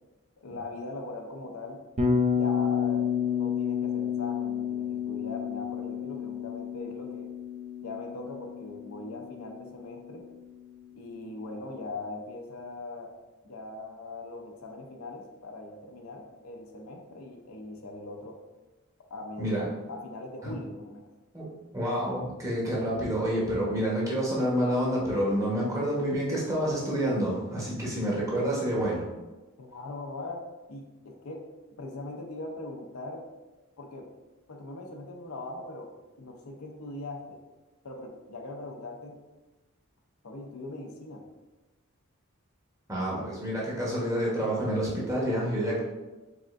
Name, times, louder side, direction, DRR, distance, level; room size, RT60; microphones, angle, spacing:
voice 1, 0.4-1.8 2.3-7.3 7.8-10.3 11.0-13.1 13.4-18.4 19.1-21.0 29.6-30.4 30.7-31.4 31.8-33.3 33.8-34.1 34.5-35.9 36.2-37.4 37.8-39.2 40.2-41.2, left 2 dB, 85° left, 2 dB, 0.6 m, -40 dB
Bass guitar, 2.0-10.1, left 7 dB, 30° right, 0.5 m, -30 dB
voice 2, 21.7-29.1 42.9-45.8, equal, 15° right, -5 dB, 1.0 m, -28 dB
4.9 x 3.5 x 2.5 m, 1.1 s
head